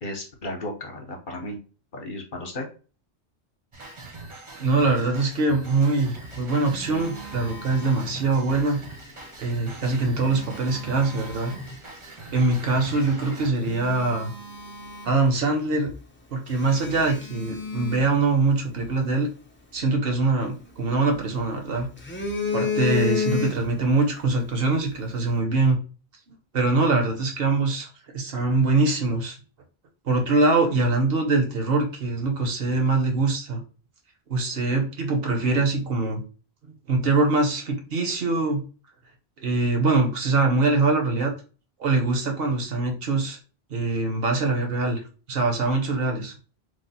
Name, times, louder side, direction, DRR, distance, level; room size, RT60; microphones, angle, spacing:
voice 1, 0.0-1.6 1.9-2.7, left 1 dB, 55° left, 2 dB, 0.9 m, -34 dB
sound 1, 3.7-13.5, right 3 dB, 35° right, 0.6 m, -42 dB
voice 2, 4.6-8.8 9.4-11.5 12.3-14.3 15.0-15.9 16.3-19.3 19.7-21.9 22.5-25.8 26.5-27.9 28.1-29.4 30.0-33.6 34.3-36.2 36.9-38.6 39.4-41.3 41.8-43.4 43.7-45.0 45.3-46.3, right 3 dB, 65° right, 2 dB, 1.1 m, -23 dB
Telephone, 6.0-8.6 9.9-11.8 12.4-12.6 13.1-13.2 13.5-15.6 15.9-16.0 16.5-18.9 20.4-21.4 21.8-23.9 24.2-24.4, left 5 dB, 15° left, 0.4 m, -32 dB
3.3 x 2.0 x 4.0 m, 0.36 s
omnidirectional pair, 1.1 m